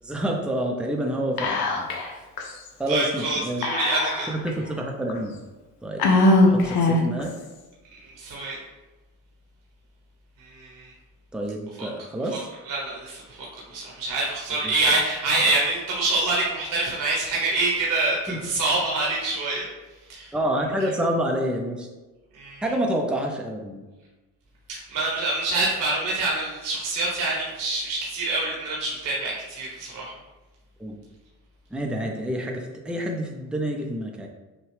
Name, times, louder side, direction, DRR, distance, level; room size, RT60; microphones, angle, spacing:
voice 1, 0.0-1.9 2.8-3.7 4.3-5.4 5.8-6.0 6.4-7.3 11.3-12.5 14.6-14.7 18.3-18.4 20.3-21.9 22.6-23.8 30.8-31.0 31.7-34.3, right 1 dB, 5° right, 1 dB, 0.6 m, -28 dB
Whispering, 1.4-2.1 2.4-2.5 3.6-4.5 5.1-5.2 6.0-7.2, left 2 dB, 80° left, 0.8 m, -20 dB
voice 2, 2.9-4.3 8.0-8.6 10.4-10.9 12.7-19.7 20.1-20.3 22.3-22.6 24.7-30.1, right 2 dB, 60° right, -4 dB, 1.2 m, -26 dB
6.1 x 2.3 x 3.3 m, 1.1 s
cardioid pair, 100°, 36 cm